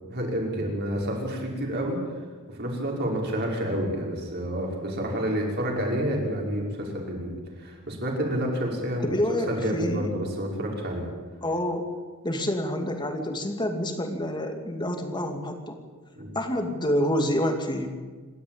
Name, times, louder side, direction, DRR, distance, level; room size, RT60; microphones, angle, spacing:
voice 1, 0.1-2.0 2.5-11.1 16.2-16.4, equal, 45° right, -1 dB, 5.6 m, -29 dB
voice 2, 9.0-10.1 11.4-11.9 12.2-15.8 16.3-17.9, left 1 dB, 20° left, 5 dB, 2.5 m, -27 dB
27.5 x 12.5 x 8.9 m, 1.4 s
head